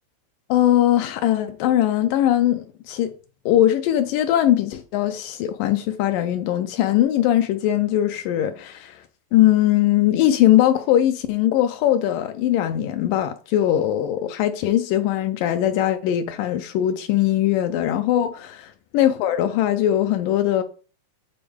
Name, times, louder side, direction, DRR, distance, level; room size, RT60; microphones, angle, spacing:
voice 1, 0.5-3.1 3.5-9.0 9.3-20.6, left 12 dB, 80° left, 2.0 m, -20 dB
8.4 x 4.3 x 3.4 m
omnidirectional pair, 4.1 m